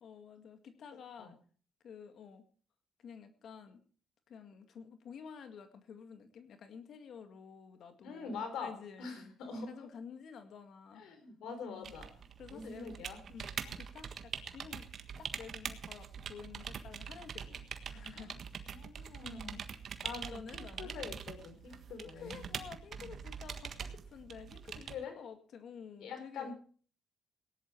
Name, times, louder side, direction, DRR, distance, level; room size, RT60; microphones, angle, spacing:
voice 1, 0.0-1.4 1.8-2.4 3.0-3.8 4.3-9.3 9.6-11.0 11.7-11.9 12.4-13.0 13.3-14.9 15.2-18.7 19.2-19.7 20.3-21.0 21.7-26.6, left 6 dB, 65° left, 8 dB, 2.0 m, -51 dB
voice 2, 8.0-9.7 11.0-12.1 12.5-13.2 13.6-13.7 18.1-18.3 18.7-19.7 20.0-22.4 23.0-23.1 24.9-25.1 26.0-26.6, left 4 dB, 80° left, 7 dB, 4.5 m, -44 dB
sound 1, 11.8-25.0, right 7 dB, 55° right, 1.5 m, -44 dB
18.0 x 11.0 x 4.6 m, 0.42 s
cardioid pair, 90°, 0 cm